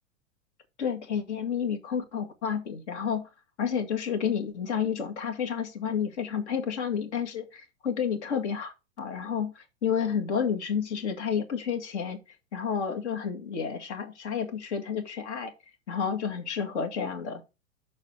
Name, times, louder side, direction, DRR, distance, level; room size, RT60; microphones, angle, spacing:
voice 1, 0.8-3.3 3.6-12.2 12.5-15.5 15.9-17.4, left 7 dB, 60° left, 2.0 m, -30 dB
6.5 x 4.1 x 6.5 m
figure-of-eight pair, 95°, 38 cm